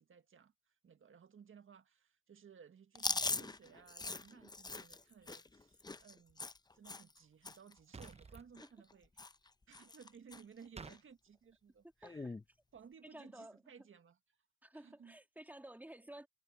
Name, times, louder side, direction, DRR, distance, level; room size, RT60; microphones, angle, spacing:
voice 1, 0.0-6.4 6.7-9.3 9.7-12.3 12.7-14.2 14.7-15.2, right 6 dB, 45° right, 1.7 m, -59 dB
Chewing mastication, 2.9-7.2 7.4-7.7 8.0-8.9 9.2-9.5 9.7-10.4 10.8-11.0 12.0-12.4, left 3 dB, 15° left, 0.7 m, -41 dB
sound 1, 7.9-8.5 10.8-11.0, right 4 dB, 20° right, 0.8 m, -50 dB
voice 2, 13.0-13.9 14.6-16.3, right 1 dB, 5° right, 2.7 m, -53 dB
cardioid pair, 90°, 30 cm